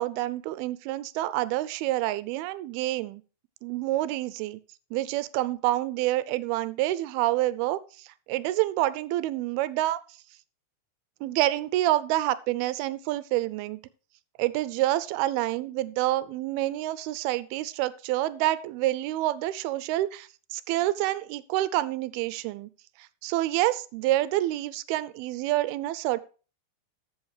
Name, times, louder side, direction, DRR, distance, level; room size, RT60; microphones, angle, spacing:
voice 1, 0.0-3.2 3.6-4.6 4.9-10.0 11.2-13.8 14.4-22.7 23.2-26.2, right 15 dB, 90° right, 17 dB, 2.5 m, -28 dB
13.5 x 5.5 x 4.8 m, 0.37 s
omnidirectional pair, 4.4 m